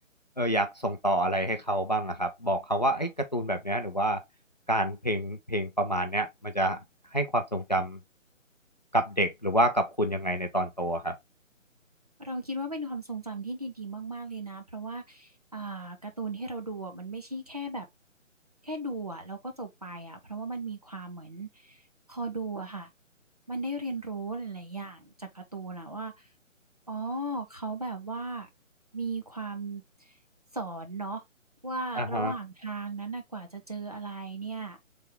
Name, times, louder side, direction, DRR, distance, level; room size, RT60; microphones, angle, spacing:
voice 1, 0.4-4.2 4.7-6.8 7.1-8.0 8.9-11.2 32.0-32.3, right 1 dB, 35° left, 0.4 m, -28 dB
voice 2, 12.2-17.9 18.6-21.8 22.1-22.9 23.5-26.2 26.9-28.5 28.9-29.8 30.5-31.2 31.6-34.8, right 2 dB, 30° right, 0.5 m, -36 dB
3.9 x 3.3 x 3.3 m
figure-of-eight pair, 150°, 39 cm